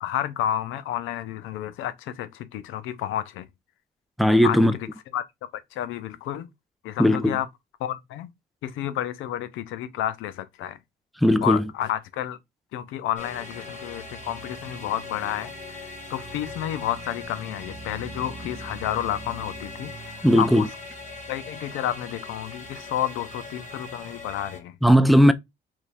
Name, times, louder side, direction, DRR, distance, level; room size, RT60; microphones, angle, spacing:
voice 1, 0.0-3.5 4.4-4.6 5.1-5.2 5.7-6.5 6.8-7.5 7.8-8.3 8.6-10.8 11.4-12.4 12.7-20.7 21.3-24.8, left 11 dB, 90° left, 0.5 m, -30 dB
voice 2, 4.2-4.8 7.0-7.4 11.2-11.7 20.2-20.7 24.8-25.3, equal, ahead, 0.4 m, -17 dB
sound 1, 13.2-24.6, left 1 dB, 40° left, 1.3 m, -40 dB
3.0 x 2.4 x 4.2 m
cardioid pair, 90°, 20 cm